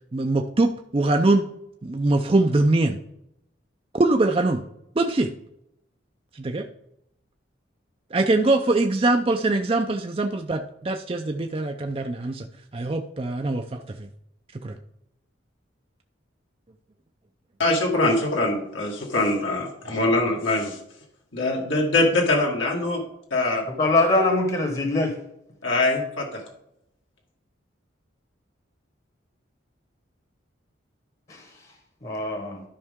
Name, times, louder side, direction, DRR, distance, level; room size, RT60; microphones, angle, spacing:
voice 1, 0.1-1.5 1.8-3.0 3.9-4.6 5.0-5.3 6.3-6.7 8.1-12.5 12.7-14.1 14.6-14.7, right 2 dB, 30° right, 4 dB, 0.4 m, -22 dB
voice 2, 17.6-20.8 21.3-23.0 23.3-23.6 25.6-26.3, left 2 dB, 80° left, -1 dB, 1.9 m, -23 dB
voice 3, 23.8-25.1 31.3-31.4 32.0-32.6, left 2 dB, 30° left, 4 dB, 1.1 m, -22 dB
12.5 x 5.4 x 3.6 m, 0.79 s
head